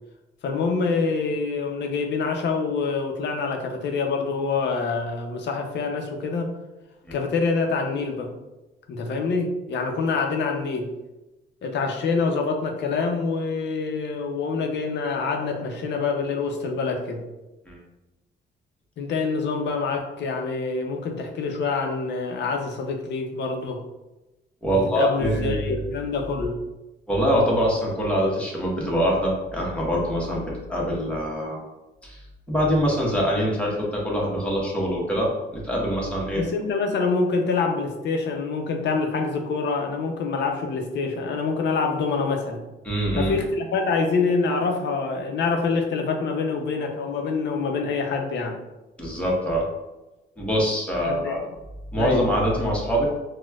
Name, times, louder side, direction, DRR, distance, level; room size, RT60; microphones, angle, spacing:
voice 1, 0.4-6.5 7.1-8.3 8.9-10.9 11.6-17.2 19.0-23.8 24.7-26.6 36.3-42.6 43.2-48.6 51.1-51.4 51.9-52.2, left 4 dB, 60° left, 3 dB, 0.6 m, -26 dB
voice 2, 24.6-25.8 27.1-31.6 32.0-36.4 42.8-43.3 49.0-49.6 50.4-51.4 51.9-53.1, equal, 5° left, -4 dB, 1.0 m, -24 dB
4.1 x 2.2 x 2.3 m, 1.0 s
cardioid pair, 90°, 20 cm